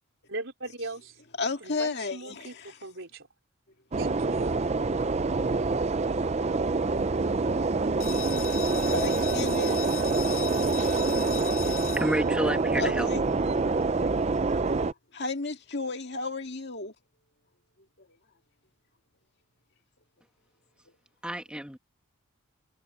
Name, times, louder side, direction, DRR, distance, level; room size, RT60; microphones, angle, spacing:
voice 1, 0.3-1.2 1.6-3.3 4.0-4.6, right 2 dB, 60° right, 4.6 m, -39 dB
voice 2, 1.4-2.7 8.9-9.8 12.8-13.2 15.1-16.9 18.0-18.1, left 3 dB, 50° left, 2.2 m, -33 dB
sound 1, 3.9-14.9, right 3 dB, 30° right, 0.5 m, -26 dB
sound 2, 8.0-13.4, left 12 dB, 75° left, 5.3 m, -39 dB
voice 3, 12.0-13.1 21.2-21.8, equal, 5° right, 1.3 m, -30 dB
head